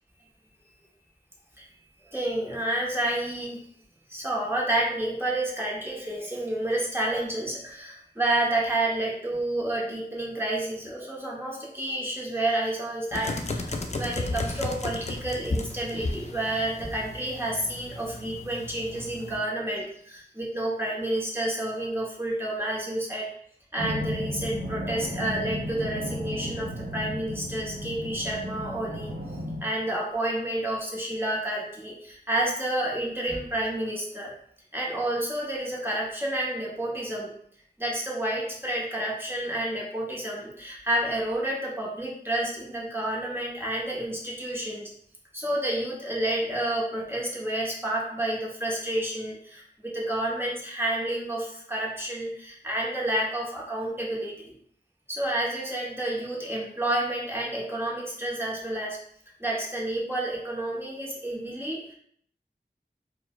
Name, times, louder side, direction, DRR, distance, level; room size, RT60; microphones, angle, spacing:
voice 1, 2.1-3.6 4.1-23.3 23.7-29.1 29.6-34.3 34.7-37.3 37.8-44.9 45.3-54.5 55.1-59.0 59.4-61.9, right 1 dB, 15° right, -4 dB, 0.8 m, -30 dB
sound 1, 13.1-19.4, left 2 dB, 40° left, 0.4 m, -34 dB
sound 2, 23.8-29.6, equal, 85° right, 0.7 m, -34 dB
4.5 x 2.1 x 2.3 m, 0.63 s
wide cardioid pair, 40°, 17 cm